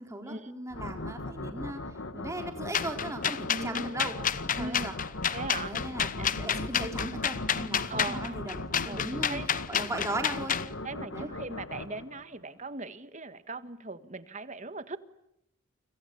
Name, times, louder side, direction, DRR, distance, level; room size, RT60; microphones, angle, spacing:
voice 1, 0.0-1.8 2.1-4.9 5.6-10.6 11.1-11.3, right 1 dB, 15° right, 3.9 m, -38 dB
sound 1, 0.7-12.4, left 2 dB, 70° left, 1.7 m, -39 dB
sound 2, 2.7-10.7, left 8 dB, 40° left, 0.9 m, -30 dB
voice 2, 3.5-3.9 4.5-4.9 5.3-5.8 6.2-6.3 7.9-8.4 8.9-9.0 9.3-9.5 10.8-15.0, right 3 dB, 35° right, 1.6 m, -39 dB
30.0 x 26.0 x 7.0 m
head